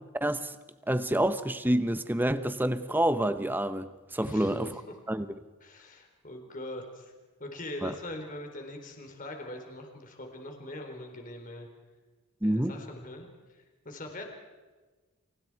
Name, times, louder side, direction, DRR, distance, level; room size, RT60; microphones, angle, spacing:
voice 1, 0.2-0.5 0.9-4.7 5.1-5.3 7.8-7.9 12.4-12.8, right 1 dB, 10° right, 0.9 m, -28 dB
voice 2, 4.2-4.8 5.6-7.1 7.4-11.7 12.4-13.3 13.5-14.2, left 1 dB, 35° left, 3.8 m, -42 dB
30.0 x 28.0 x 4.7 m
head